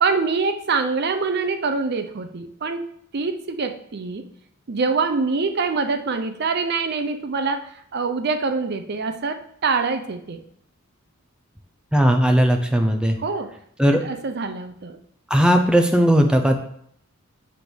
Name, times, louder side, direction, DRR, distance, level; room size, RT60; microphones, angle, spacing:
voice 1, 0.0-2.9 3.1-4.2 4.7-10.4 13.2-13.5 14.0-15.0, right 4 dB, 50° right, 8 dB, 0.5 m, -25 dB
voice 2, 11.9-13.2 13.8-14.0 15.3-16.6, equal, 5° right, 4 dB, 0.6 m, -17 dB
8.4 x 3.4 x 6.2 m, 0.67 s
head